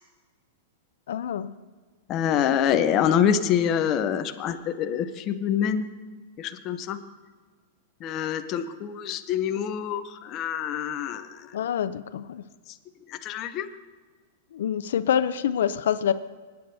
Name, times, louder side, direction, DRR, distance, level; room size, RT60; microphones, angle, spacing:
voice 1, 1.1-1.5 11.5-12.4 14.5-16.1, left 9 dB, 75° left, 13 dB, 0.5 m, -26 dB
voice 2, 2.1-5.9 6.4-7.0 8.0-11.5 12.7-12.8 13.1-13.7, left 9 dB, 25° left, 8 dB, 0.6 m, -26 dB
26.0 x 9.2 x 2.7 m, 1.4 s
supercardioid pair, 165°, 0 cm